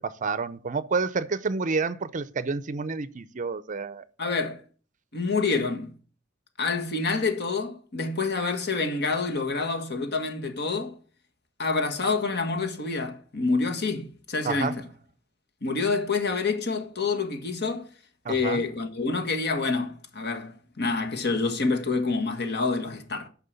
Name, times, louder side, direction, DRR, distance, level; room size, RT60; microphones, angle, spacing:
voice 1, 0.0-4.0 14.4-14.8 18.2-18.6, right 4 dB, 40° right, 0.6 m, -29 dB
voice 2, 4.2-4.6 5.1-5.9 6.6-11.0 11.6-14.8 15.6-17.9 18.3-23.3, left 4 dB, 55° left, 1.7 m, -27 dB
9.5 x 5.9 x 6.9 m
head